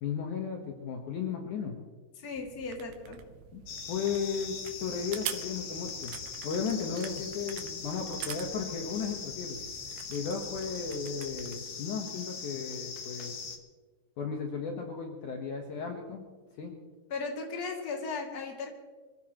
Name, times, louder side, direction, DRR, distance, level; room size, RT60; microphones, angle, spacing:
voice 1, 0.0-1.8 3.5-3.6 3.9-6.2 6.4-9.6 10.1-13.3 14.2-16.2 16.6-16.7, left 6 dB, 65° left, 2 dB, 2.5 m, -35 dB
voice 2, 2.2-3.2 17.1-18.7, left 4 dB, 30° left, 0 dB, 2.3 m, -36 dB
sound 1, 2.3-11.6, right 11 dB, 90° right, 2.9 m, -45 dB
sound 2, 3.7-13.6, left 6 dB, 85° left, 1.1 m, -41 dB
26.0 x 15.5 x 3.0 m, 1.4 s
omnidirectional pair, 4.3 m